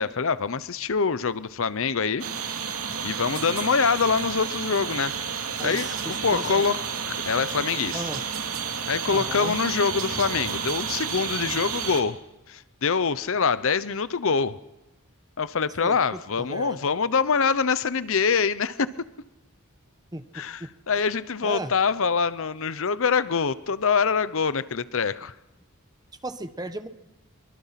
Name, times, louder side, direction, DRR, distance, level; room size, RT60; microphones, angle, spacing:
voice 1, 0.0-2.2 3.0-6.8 7.1-8.0 8.9-12.2 12.5-14.6 15.4-19.1 20.3-25.3, left 5 dB, 60° left, 16 dB, 0.7 m, -25 dB
sound 1, 2.2-12.0, right 6 dB, 80° right, 2.8 m, -31 dB
voice 2, 5.6-6.6 7.9-8.2 9.1-9.5 15.8-16.8 20.1-20.7 21.4-21.7 26.2-26.9, right 1 dB, 20° right, 10 dB, 1.2 m, -36 dB
24.0 x 24.0 x 5.9 m, 0.97 s
head